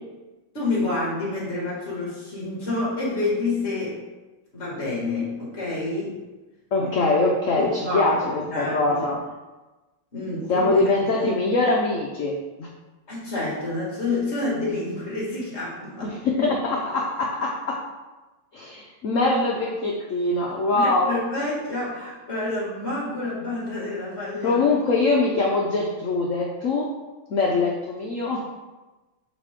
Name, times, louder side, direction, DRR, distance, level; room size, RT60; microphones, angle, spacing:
voice 1, 0.5-3.9 4.5-6.1 7.6-8.9 10.1-10.6 13.1-16.1 20.7-24.6, left 2 dB, 35° left, -7 dB, 2.3 m, -28 dB
voice 2, 6.7-9.2 10.5-12.7 16.0-17.8 18.5-21.1 24.4-26.9 27.3-28.4, left 3 dB, 65° left, -1 dB, 0.8 m, -23 dB
7.4 x 4.2 x 3.6 m, 1.1 s
omnidirectional pair, 2.2 m